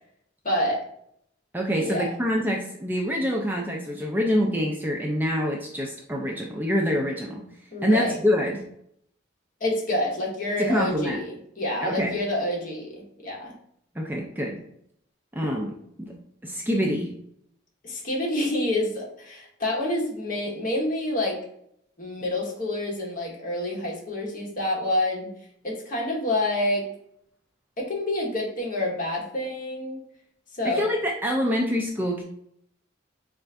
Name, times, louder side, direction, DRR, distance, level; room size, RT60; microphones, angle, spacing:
voice 1, 0.4-0.8 1.8-2.1 7.7-8.2 9.6-13.5 17.8-21.4 22.0-25.3 25.6-26.9 27.8-30.0 30.5-30.8, left 1 dB, 45° left, -3 dB, 1.1 m, -28 dB
voice 2, 1.5-7.4 7.8-8.6 10.6-11.2 11.8-12.1 14.0-14.6 15.3-16.2 16.4-17.1 30.6-32.2, equal, 10° right, 0 dB, 0.4 m, -26 dB
4.2 x 2.5 x 3.3 m, 0.71 s
head